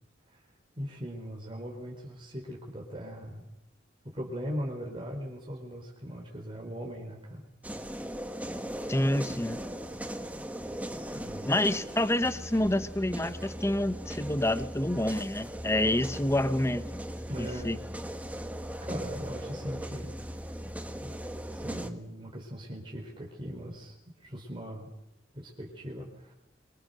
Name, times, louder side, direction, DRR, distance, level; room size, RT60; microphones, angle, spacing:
voice 1, 0.8-3.5 4.0-7.5 11.1-11.5 17.3-17.8 18.8-20.2 20.9-21.1 21.5-24.9 25.3-26.3, equal, 30° right, -1 dB, 4.3 m, -39 dB
sound 1, 7.6-21.9, equal, 10° right, 1.6 m, -38 dB
voice 2, 8.9-9.6 11.4-17.0 17.4-17.8, left 1 dB, 15° left, 11 dB, 1.1 m, -28 dB
25.5 x 24.0 x 6.7 m, 0.84 s
head